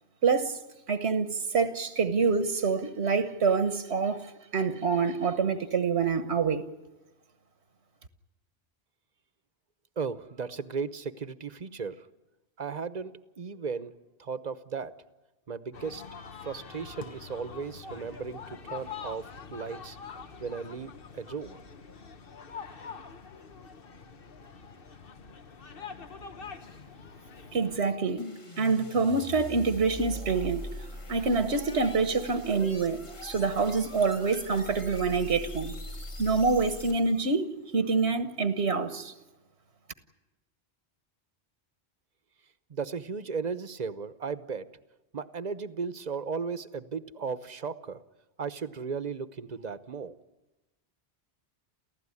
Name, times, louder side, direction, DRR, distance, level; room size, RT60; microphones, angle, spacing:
voice 1, 0.2-0.6 0.9-6.6 27.5-28.3 28.6-30.7 31.1-35.7 36.2-39.1, right 4 dB, 80° right, 1.5 m, -26 dB
voice 2, 10.0-12.1 12.6-13.9 14.2-15.0 15.5-16.1 16.4-20.0 20.4-21.6 42.7-44.7 45.1-48.0 48.4-50.2, right 5 dB, 40° right, 1.0 m, -36 dB
sound 1, 15.7-27.8, left 6 dB, 55° left, 1.2 m, -45 dB
sound 2, 28.2-37.3, left 1 dB, 30° left, 1.4 m, -42 dB
29.0 x 15.5 x 9.8 m
omnidirectional pair, 1.1 m